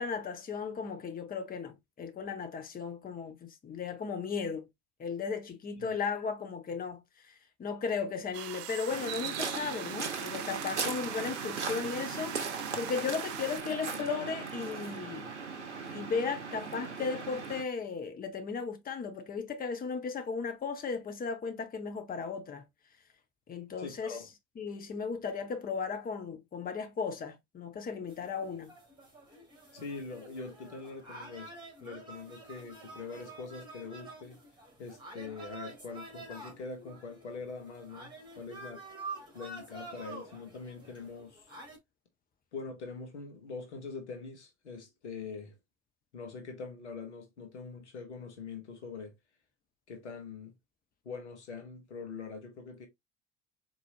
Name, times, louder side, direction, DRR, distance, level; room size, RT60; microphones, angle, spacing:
voice 1, 0.0-4.7 5.0-15.3 15.9-22.6 23.5-24.2 24.6-28.7, left 5 dB, 25° left, 0.9 m, -36 dB
sound 1, 8.3-13.6, right 14 dB, 45° right, 0.4 m, -42 dB
Waves surf, 8.9-17.6, right 5 dB, 90° right, 0.7 m, -38 dB
voice 2, 23.8-24.3 29.7-31.5 31.8-34.4 34.8-38.8 39.3-41.5 42.5-45.6 46.1-49.1 49.9-50.5 51.0-52.9, left 4 dB, 80° left, 1.1 m, -43 dB
sound 2, 28.1-41.8, right 3 dB, 15° right, 2.1 m, -48 dB
4.1 x 2.9 x 2.7 m
figure-of-eight pair, 65°, 34 cm